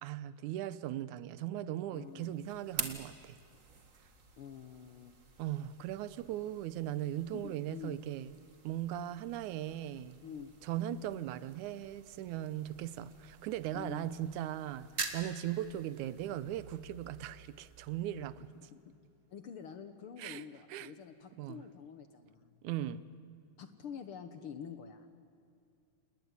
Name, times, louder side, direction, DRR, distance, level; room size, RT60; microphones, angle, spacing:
voice 1, 0.0-3.4 5.4-8.3 8.6-10.2 10.6-14.9 15.1-18.7 20.2-20.4 20.7-20.9 21.4-21.6 22.6-23.0, right 12 dB, 85° right, 2.2 m, -38 dB
voice 2, 1.9-2.3 4.4-5.1 7.3-8.0 10.2-10.5 13.7-14.1 18.5-19.0 19.3-22.6 23.6-25.1, left 7 dB, 60° left, 1.6 m, -47 dB
sound 1, 1.9-18.9, right 4 dB, 30° right, 1.7 m, -48 dB
28.0 x 19.5 x 9.6 m
omnidirectional pair, 3.4 m